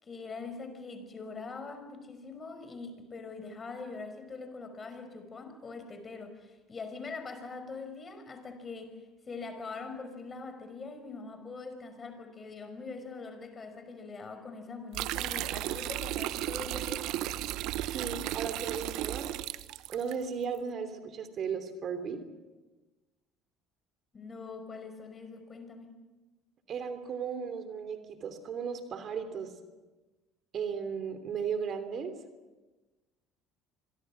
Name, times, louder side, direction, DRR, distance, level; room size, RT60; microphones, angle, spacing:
voice 1, 0.0-9.0 9.3-17.5 24.1-26.0, left 4 dB, 30° left, 8 dB, 5.3 m, -43 dB
sound 1, 14.9-20.2, right 15 dB, 65° right, 0.8 m, -34 dB
voice 2, 17.9-19.3 19.9-22.2 26.7-29.5 30.5-32.1, right 6 dB, 50° right, 9 dB, 3.1 m, -36 dB
26.0 x 22.5 x 6.0 m, 1.2 s
hypercardioid pair, 70°, 0 cm